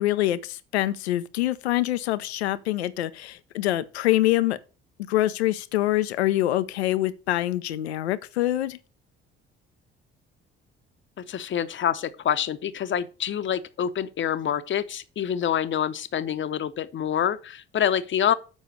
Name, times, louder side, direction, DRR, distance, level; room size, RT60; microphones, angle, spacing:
voice 1, 0.0-4.6 5.1-8.8, left 15 dB, 75° left, 0.6 m, -25 dB
voice 2, 11.2-18.3, left 9 dB, 35° left, 0.8 m, -26 dB
7.2 x 5.4 x 6.4 m
figure-of-eight pair, 45°, 32 cm